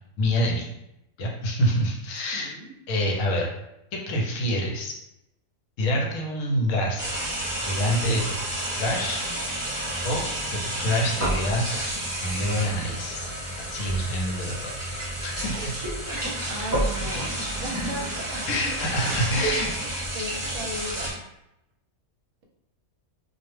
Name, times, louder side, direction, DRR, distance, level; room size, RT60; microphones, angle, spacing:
voice 1, 0.2-0.7 1.2-2.5 2.9-3.5 3.9-4.9 5.8-7.1 7.6-8.4 8.8-9.2 10.0-10.3 10.8-11.7 12.2-13.3 13.6-14.7 15.2-15.8 18.5-19.7, equal, 75° left, -1 dB, 0.9 m, -26 dB
voice 2, 2.3-2.8 16.4-18.9 20.1-21.2, equal, 65° right, -1 dB, 0.9 m, -37 dB
sound 1, 7.0-21.1, right 1 dB, 30° right, 1.1 m, -30 dB
2.4 x 2.0 x 3.0 m, 0.85 s
omnidirectional pair, 1.4 m